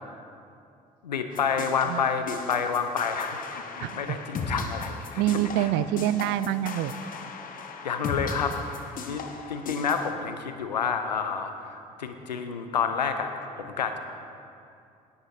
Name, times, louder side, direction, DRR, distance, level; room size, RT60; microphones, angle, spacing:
voice 1, 1.0-5.7 7.8-13.3 13.6-14.0, left 6 dB, 85° left, 7 dB, 0.6 m, -29 dB
sound 1, 1.3-10.1, left 4 dB, 40° left, 1.1 m, -37 dB
voice 2, 3.8-4.2 5.1-6.9, right 13 dB, 55° right, 15 dB, 0.4 m, -26 dB
17.0 x 9.7 x 2.7 m, 2.5 s
figure-of-eight pair, 55°, 21 cm